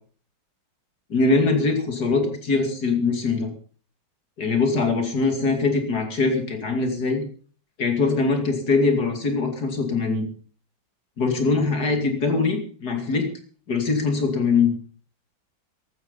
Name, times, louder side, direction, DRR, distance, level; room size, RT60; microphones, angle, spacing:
voice 1, 1.1-3.5 4.4-7.2 7.8-10.3 11.2-13.2 13.7-14.7, left 4 dB, 55° left, 5 dB, 3.2 m, -22 dB
15.5 x 12.5 x 5.4 m, 0.43 s
omnidirectional pair, 2.1 m